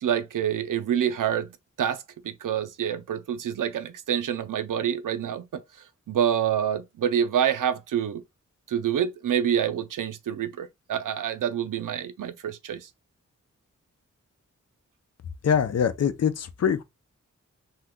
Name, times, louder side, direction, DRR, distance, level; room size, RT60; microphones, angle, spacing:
voice 1, 0.0-1.5 1.8-5.6 6.1-8.2 8.7-12.9, right 9 dB, 80° right, 0.5 m, -27 dB
voice 2, 15.4-16.8, left 7 dB, 55° left, 0.5 m, -23 dB
2.8 x 2.2 x 3.5 m
wide cardioid pair, 60°, 31 cm